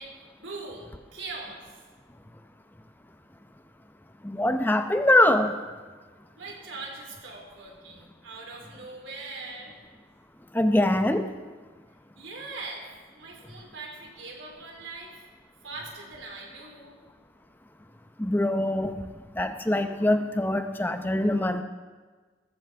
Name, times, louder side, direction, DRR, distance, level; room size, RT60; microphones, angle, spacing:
voice 1, 0.0-1.6 6.4-9.8 12.2-12.8 13.1-15.2 15.6-17.0, right 3 dB, 80° right, -1 dB, 3.5 m, -41 dB
voice 2, 4.2-5.6 10.5-11.3 18.2-19.0 19.4-21.6, left 1 dB, 10° left, 8 dB, 0.7 m, -23 dB
18.5 x 14.0 x 3.5 m, 1.4 s
head